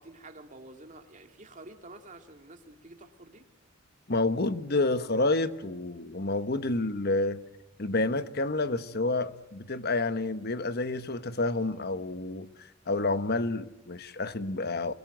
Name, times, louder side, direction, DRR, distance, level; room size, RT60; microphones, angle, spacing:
voice 1, 0.0-3.5, right 2 dB, 40° right, 2.5 m, -49 dB
voice 2, 4.1-7.4 7.8-12.5 12.9-14.9, left 2 dB, 50° left, 1.2 m, -29 dB
25.0 x 24.0 x 9.2 m
head